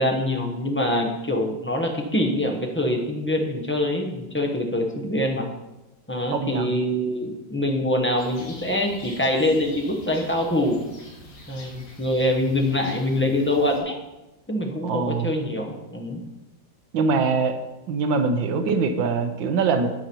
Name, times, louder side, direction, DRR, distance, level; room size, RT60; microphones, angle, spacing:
voice 1, 0.0-5.4 6.1-10.9 11.5-14.0 14.5-16.2, left 1 dB, 10° left, 0 dB, 0.6 m, -24 dB
voice 2, 6.3-6.8 14.8-15.3 16.9-17.6 17.9-19.9, right 4 dB, 80° right, 7 dB, 1.6 m, -23 dB
sound 1, 8.2-13.8, left 1 dB, 55° left, 1.8 m, -45 dB
8.8 x 6.8 x 4.4 m, 0.98 s
omnidirectional pair, 2.0 m